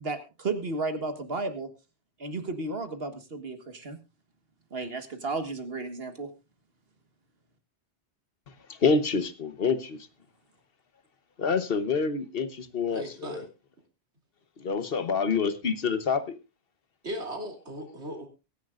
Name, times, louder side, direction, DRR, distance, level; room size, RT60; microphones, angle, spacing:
voice 1, 0.0-1.7 2.2-4.0 4.7-6.3, right 3 dB, 60° right, 1.7 m, -33 dB
voice 2, 8.5-10.0 11.4-13.4 14.6-16.4, left 5 dB, 60° left, 1.3 m, -27 dB
voice 3, 12.9-13.5 17.0-18.3, equal, 80° right, 3.4 m, -37 dB
23.0 x 10.5 x 2.5 m
omnidirectional pair, 1.1 m